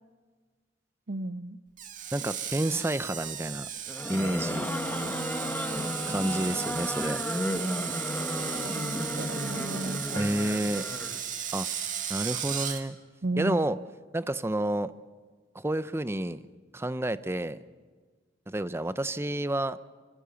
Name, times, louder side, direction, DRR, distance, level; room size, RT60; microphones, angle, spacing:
voice 1, 1.1-1.6 6.1-6.2 8.6-10.3 13.2-13.6, right 2 dB, 65° right, 14 dB, 0.8 m, -34 dB
Screech, 1.8-12.8, right 9 dB, 45° right, 1.9 m, -36 dB
voice 2, 2.1-3.7 4.1-4.7 6.1-7.2 10.1-10.9 11.5-11.7 12.1-13.0 13.4-13.8 14.1-14.9 15.5-16.4 16.7-17.6 18.5-19.8, right 1 dB, 15° right, 14 dB, 0.7 m, -29 dB
sound 1, 3.9-11.2, equal, 10° left, 1.6 m, -33 dB
25.5 x 24.5 x 7.0 m, 1.4 s
head